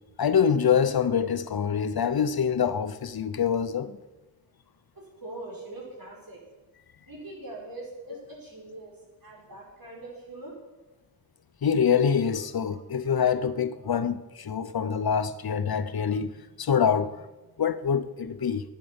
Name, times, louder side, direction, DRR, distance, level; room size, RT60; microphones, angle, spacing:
voice 1, 0.2-4.0 11.6-16.3 16.6-17.2 17.6-18.6, left 7 dB, 75° left, 0.8 m, -25 dB
voice 2, 5.0-6.4 7.1-10.6, right 2 dB, 65° right, 5.3 m, -42 dB
12.0 x 9.2 x 7.0 m
wide cardioid pair, 85°, 37 cm